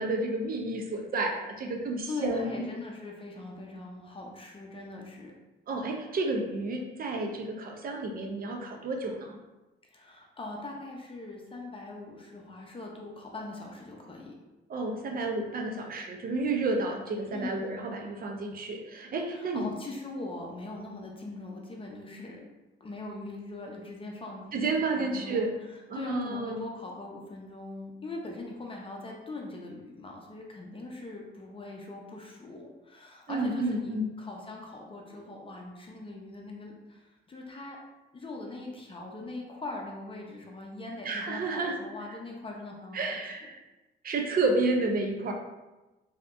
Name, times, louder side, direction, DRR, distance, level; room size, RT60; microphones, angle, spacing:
voice 1, 0.0-2.7 5.7-9.4 14.7-19.7 24.5-25.5 25.9-26.7 33.3-34.1 41.0-41.8 42.9-43.6 44.0-45.3, right 2 dB, 45° right, 3 dB, 0.6 m, -31 dB
voice 2, 2.1-5.3 9.9-14.3 17.3-17.6 19.3-22.5 22.8-37.8 38.1-43.2, left 2 dB, 25° left, 0 dB, 0.6 m, -41 dB
3.3 x 2.8 x 2.5 m, 1.1 s
cardioid pair, 90°, 20 cm